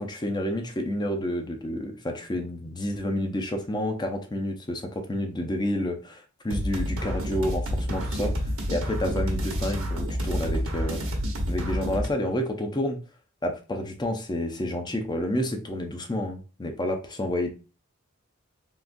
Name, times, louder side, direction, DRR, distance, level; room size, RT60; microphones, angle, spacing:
voice 1, 0.0-8.3 8.7-11.0 11.5-13.0 13.4-17.5, left 1 dB, 20° left, 4 dB, 0.5 m, -29 dB
sound 1, 6.5-12.1, equal, 85° right, 1.0 m, -29 dB
3.7 x 2.4 x 2.5 m, 0.33 s
head